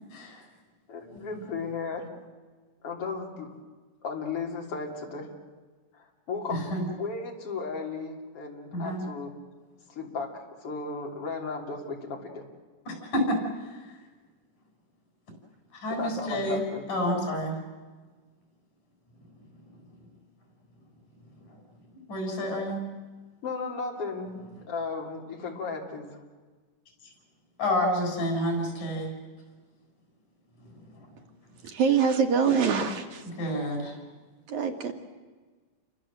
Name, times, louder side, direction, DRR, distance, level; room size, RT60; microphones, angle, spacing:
voice 1, 0.9-2.1 2.8-3.5 4.0-5.3 5.9-9.3 9.9-12.4 15.9-17.2 23.4-26.2, left 4 dB, 45° left, 1 dB, 4.1 m, -35 dB
voice 2, 6.5-6.8 8.7-9.0 12.9-13.4 15.7-16.6 16.9-17.6 22.1-22.8 27.6-29.1 30.6-30.7 33.4-33.9, equal, 90° left, 2 dB, 8.7 m, -29 dB
voice 3, 31.6-33.2 34.5-34.9, right 6 dB, 70° right, 4 dB, 3.3 m, -24 dB
29.5 x 24.5 x 7.7 m, 1.4 s
omnidirectional pair, 3.6 m